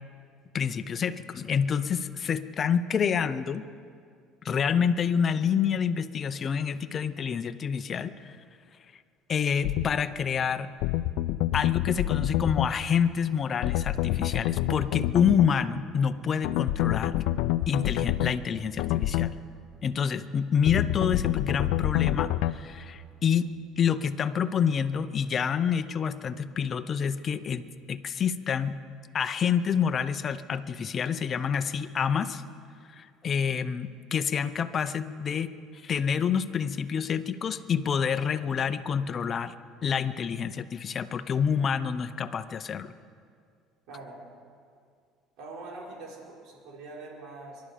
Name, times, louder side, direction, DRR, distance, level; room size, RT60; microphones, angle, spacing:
voice 1, 0.5-3.6 4.4-8.4 9.3-10.7 11.5-17.2 17.7-19.4 19.8-23.5 23.8-28.8 29.1-32.4 32.9-39.5 39.8-42.9, left 7 dB, 35° left, 11 dB, 0.7 m, -28 dB
sound 1, 9.6-9.9 10.8-12.7 13.6-15.5 16.4-18.3 18.8-19.3 20.7-22.5, left 14 dB, 80° left, 0.5 m, -27 dB
voice 2, 43.9-44.2 45.4-47.6, right 3 dB, 70° right, -3 dB, 4.9 m, -43 dB
24.0 x 11.5 x 5.0 m, 2.2 s
cardioid pair, 120°, 0 cm